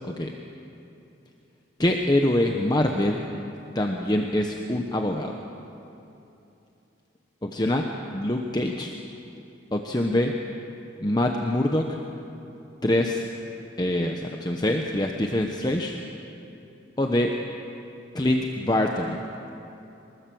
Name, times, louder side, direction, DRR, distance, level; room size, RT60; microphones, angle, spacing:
voice 1, 1.8-3.2 3.7-5.3 7.4-7.8 8.1-8.9 9.7-10.3 11.0-12.0 12.8-13.2 13.8-16.0 17.0-17.3 18.1-19.2, left 1 dB, 20° left, 2 dB, 1.0 m, -24 dB
23.5 x 20.0 x 7.8 m, 2.9 s
head